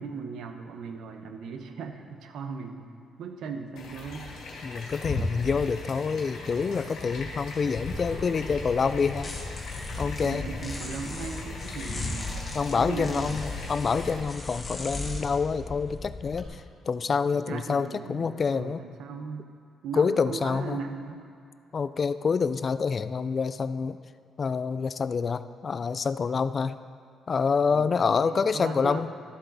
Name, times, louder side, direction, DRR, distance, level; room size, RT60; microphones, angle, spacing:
voice 1, 0.0-2.9 3.2-4.3 10.2-12.4 12.8-13.3 17.4-19.5 19.8-21.3 27.7-29.1, right 5 dB, 75° right, 6 dB, 0.8 m, -38 dB
sound 1, 3.8-14.2, left 2 dB, 80° left, 1.9 m, -37 dB
voice 2, 4.6-9.3 10.0-10.4 12.5-18.8 19.9-20.8 21.7-24.0 24.4-26.8 27.3-29.1, left 5 dB, 40° left, 13 dB, 0.3 m, -27 dB
sound 2, 7.9-16.4, left 2 dB, 25° left, 1.7 m, -38 dB
12.5 x 7.3 x 4.0 m, 2.3 s
cardioid pair, 90°, 0 cm